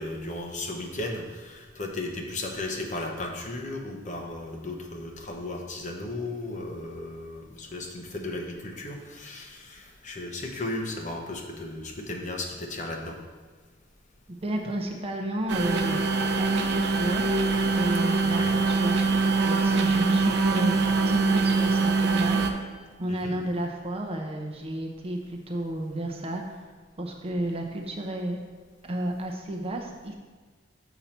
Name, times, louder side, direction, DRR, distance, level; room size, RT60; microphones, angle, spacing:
voice 1, 0.0-13.2 18.2-18.6 23.1-23.4, left 2 dB, 40° left, 1 dB, 1.0 m, -35 dB
voice 2, 14.3-16.0 16.4-17.3 17.7-19.0 19.4-22.4 23.0-26.6 27.0-28.4 28.8-30.2, right 1 dB, 30° right, 1 dB, 0.7 m, -32 dB
sound 1, 15.5-22.5, right 4 dB, 65° right, 0.7 m, -23 dB
7.0 x 5.6 x 4.3 m, 1.4 s
head